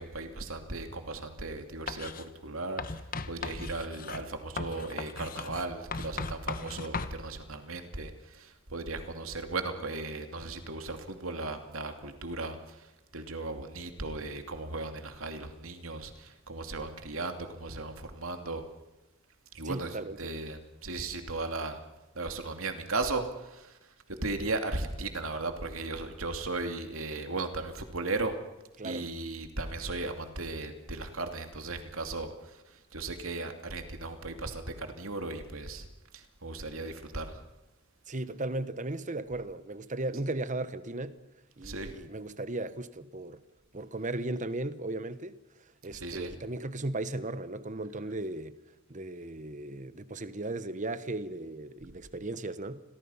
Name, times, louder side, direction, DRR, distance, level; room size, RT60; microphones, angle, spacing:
voice 1, 0.0-2.8 3.3-12.8 13.1-18.6 19.5-21.8 22.2-23.7 24.1-28.3 28.8-32.3 32.9-35.8 36.1-37.4 41.6-41.9 46.0-46.3, right 3 dB, 80° right, 2.7 m, -36 dB
Writing, 1.9-2.3 2.8-7.2, left 4 dB, 45° left, 1.2 m, -38 dB
voice 2, 19.6-20.3 28.8-29.1 38.1-41.2 41.6-43.4 43.7-45.4 45.8-48.6 48.9-52.8, right 2 dB, 35° right, 1.1 m, -36 dB
29.5 x 22.5 x 5.7 m
head